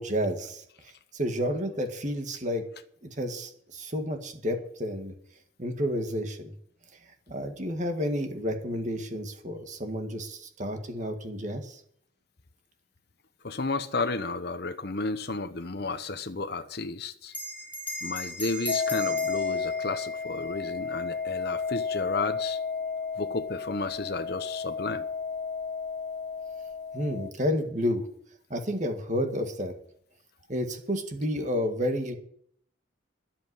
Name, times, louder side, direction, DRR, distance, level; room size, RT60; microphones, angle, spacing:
voice 1, 0.0-2.6 3.0-5.1 5.6-6.5 7.3-11.8 26.9-28.0 28.5-29.7 30.5-32.2, equal, 35° right, 1.9 m, -31 dB
voice 2, 13.4-17.3 18.0-22.6 23.2-25.0, left 3 dB, 55° left, 0.9 m, -32 dB
Bell, 17.3-22.2, equal, 10° left, 1.6 m, -38 dB
sound 1, 18.7-27.3, left 5 dB, 40° left, 0.5 m, -32 dB
11.0 x 8.1 x 9.8 m
head